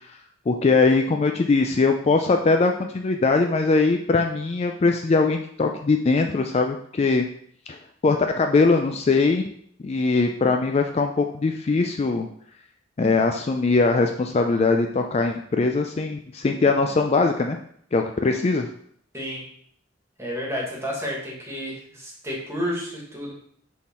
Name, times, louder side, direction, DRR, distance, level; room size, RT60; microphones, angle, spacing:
voice 1, 0.5-7.3 7.7-7.8 8.0-9.4 9.8-12.3 13.0-17.6 17.9-18.7, left 3 dB, 30° left, 4 dB, 0.3 m, -21 dB
voice 2, 19.1-19.4 20.2-23.3, equal, 15° right, -3 dB, 1.6 m, -31 dB
6.3 x 3.7 x 4.3 m, 0.64 s
head